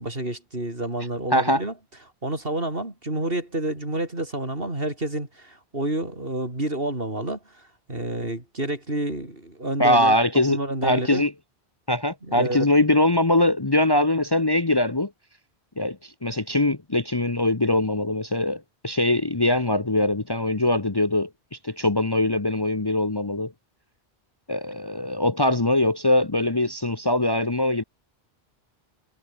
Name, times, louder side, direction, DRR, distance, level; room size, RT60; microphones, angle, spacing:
voice 1, 0.0-1.7 2.2-10.2 10.5-11.2 12.2-12.8, right 1 dB, 60° right, 5.5 m, -29 dB
voice 2, 1.3-1.6 9.8-11.3 11.9-15.1 15.8-21.3 21.6-23.5 24.5-27.8, left 1 dB, 25° left, 1.1 m, -22 dB
omnidirectional pair, 1.1 m